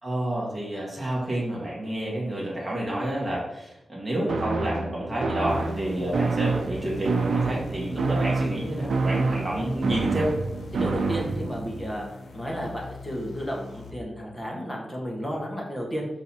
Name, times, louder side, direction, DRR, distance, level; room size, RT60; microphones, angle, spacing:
voice 1, 0.0-10.3, right 1 dB, 10° right, -6 dB, 1.7 m, -29 dB
sound 1, 4.3-11.7, right 4 dB, 65° right, 0.6 m, -27 dB
sound 2, 5.5-13.9, left 3 dB, 90° left, 1.0 m, -42 dB
voice 2, 10.7-12.0 12.3-16.1, equal, 10° left, -2 dB, 1.5 m, -32 dB
5.7 x 3.9 x 4.3 m, 0.87 s
wide cardioid pair, 130°, 0 cm